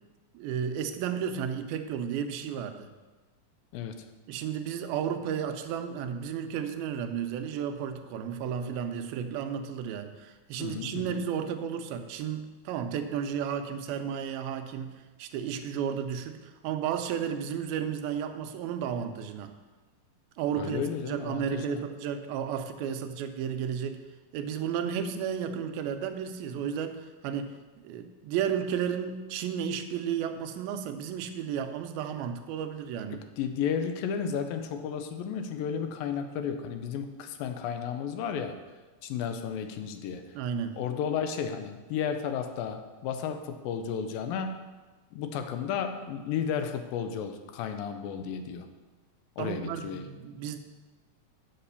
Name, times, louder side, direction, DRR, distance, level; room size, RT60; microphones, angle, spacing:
voice 1, 0.3-2.9 4.3-19.5 20.4-24.0 24.3-27.5 27.8-33.2 40.4-40.8 49.4-50.6, right 8 dB, 90° right, 8 dB, 2.5 m, -33 dB
voice 2, 3.7-4.1 10.6-11.2 20.5-21.8 33.1-38.6 39.0-40.4 40.8-44.6 45.1-48.7 49.4-50.1, left 7 dB, 80° left, 7 dB, 2.3 m, -33 dB
8.0 x 5.9 x 6.8 m, 1.2 s
omnidirectional pair, 4.2 m